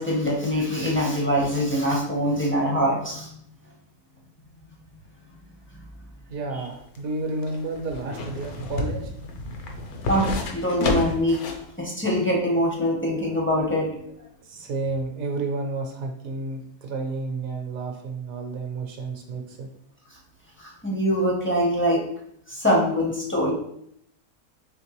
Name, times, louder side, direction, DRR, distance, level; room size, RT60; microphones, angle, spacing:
voice 1, 0.0-3.3 10.1-11.4 11.8-13.9 20.6-22.0 22.5-23.5, equal, 15° left, -3 dB, 0.5 m, -23 dB
voice 2, 6.3-9.1 14.4-19.7, right 3 dB, 70° right, 3 dB, 1.0 m, -31 dB
sound 1, 6.6-11.7 12.1-12.2, left 2 dB, 60° left, 0.8 m, -30 dB
4.4 x 3.2 x 3.0 m, 0.70 s
omnidirectional pair, 1.6 m